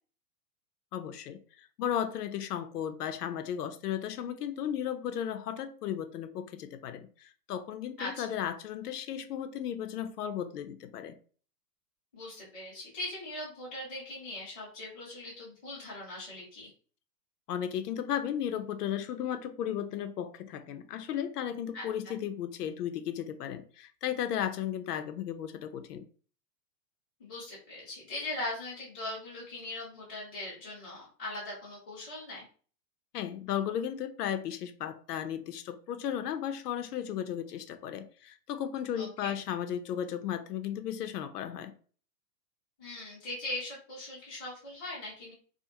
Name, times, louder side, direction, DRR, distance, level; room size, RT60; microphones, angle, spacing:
voice 1, 0.9-11.2 17.5-26.0 33.1-41.7, left 9 dB, 75° left, 0.5 m, -35 dB
voice 2, 12.1-16.7 21.7-22.1 27.2-32.5 39.0-39.3 42.8-45.3, left 2 dB, 5° left, 0.4 m, -40 dB
2.4 x 2.4 x 2.7 m
hypercardioid pair, 165°, 48 cm